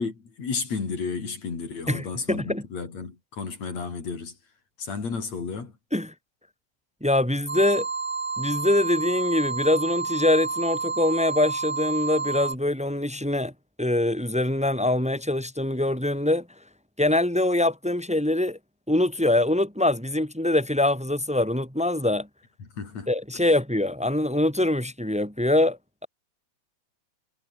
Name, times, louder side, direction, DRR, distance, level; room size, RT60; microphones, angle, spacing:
voice 1, 0.0-4.4 4.8-5.8 22.6-23.1 23.4-23.5, left 5 dB, 65° left, 5.5 m, -32 dB
voice 2, 1.9-2.6 5.9-6.1 7.0-7.9 8.4-13.5 13.8-16.5 17.0-18.6 18.9-22.3 23.1-26.1, left 1 dB, ahead, 4.5 m, -24 dB
sound 1, 7.5-12.5, right 4 dB, 30° right, 0.9 m, -30 dB
omnidirectional pair, 3.3 m